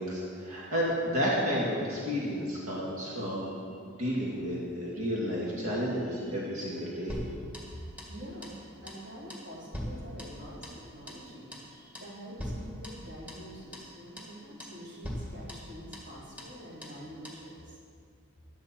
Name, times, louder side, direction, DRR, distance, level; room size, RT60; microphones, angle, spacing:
voice 1, 0.0-3.6 3.8-7.2, equal, 85° right, -5 dB, 2.2 m, -31 dB
sound 1, 7.1-8.2 8.4-8.6 8.9-9.0 9.3-10.8 11.1-11.3 11.5-11.7 11.9-12.1 12.4-13.5 13.7-13.9 14.2-14.3 14.6-14.8 15.0-16.1 16.4-16.5 16.8-17.0 17.2-17.4, equal, 5° right, 1.7 m, -41 dB
voice 2, 8.0-8.5 8.8-11.5 11.9-17.8, equal, 50° right, -6 dB, 3.7 m, -46 dB
14.5 x 11.0 x 4.5 m, 2.3 s
head